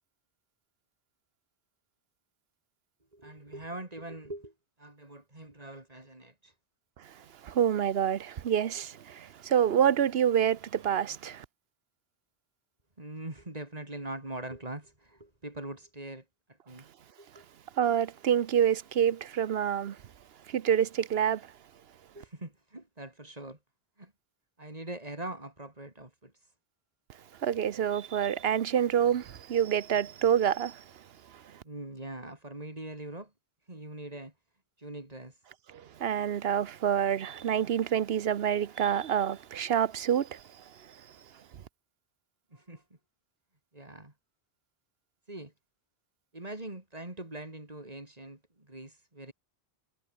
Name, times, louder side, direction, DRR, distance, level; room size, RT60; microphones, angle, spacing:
voice 1, 3.1-4.5 4.8-6.6 8.8-8.9 13.0-16.9 17.2-17.4 22.1-23.6 24.0-24.1 24.6-26.5 31.6-33.3 33.7-34.3 34.8-35.4 42.5-42.8 43.7-44.1 45.3-45.5 46.3-49.3, right 1 dB, 35° right, 3.9 m, -42 dB
voice 2, 7.4-11.4 17.8-20.0 20.5-21.4 27.4-30.8 36.0-40.4, right 9 dB, 70° right, 1.0 m, -27 dB
omnidirectional pair, 1.1 m